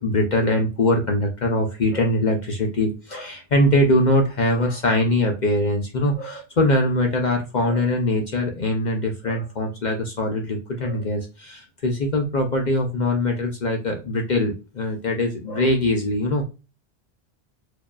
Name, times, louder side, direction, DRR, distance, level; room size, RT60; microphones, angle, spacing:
voice 1, 0.0-16.4, left 1 dB, 50° left, 2 dB, 0.8 m, -22 dB
4.7 x 2.7 x 2.3 m, 0.29 s
omnidirectional pair, 1.1 m